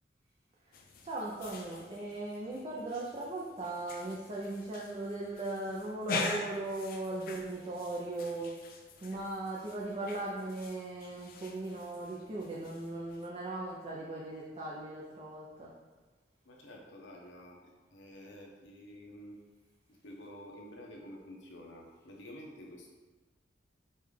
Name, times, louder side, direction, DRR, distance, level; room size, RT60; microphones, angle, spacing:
sound 1, 0.7-13.3, left 3 dB, 50° left, 0.4 m, -44 dB
voice 1, 1.0-8.6 9.0-15.7, right 2 dB, 35° right, -4 dB, 0.5 m, -38 dB
voice 2, 16.4-19.4 19.9-22.9, equal, 80° left, 0 dB, 0.8 m, -50 dB
5.4 x 2.4 x 3.2 m, 1.2 s
head